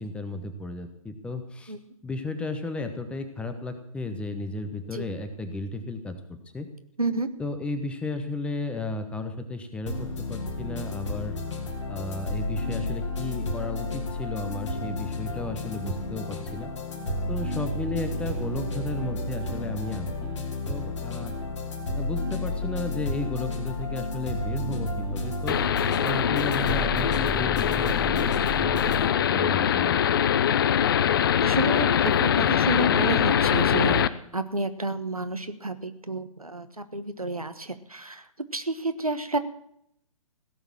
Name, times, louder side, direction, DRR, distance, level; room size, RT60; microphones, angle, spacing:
voice 1, 0.0-1.7 2.0-6.7 7.4-11.4 11.9-16.7 17.3-20.4 20.7-21.4 21.9-25.6 26.0-30.0, left 2 dB, 5° left, 8 dB, 1.1 m, -34 dB
sound 1, 9.9-29.1, left 1 dB, 55° left, 3.0 m, -32 dB
sound 2, 25.5-34.1, left 9 dB, 40° left, 0.6 m, -23 dB
voice 2, 31.4-38.2 38.5-39.4, right 2 dB, 85° right, 10 dB, 1.4 m, -30 dB
17.0 x 7.1 x 8.8 m, 0.73 s
figure-of-eight pair, 130°, 18 cm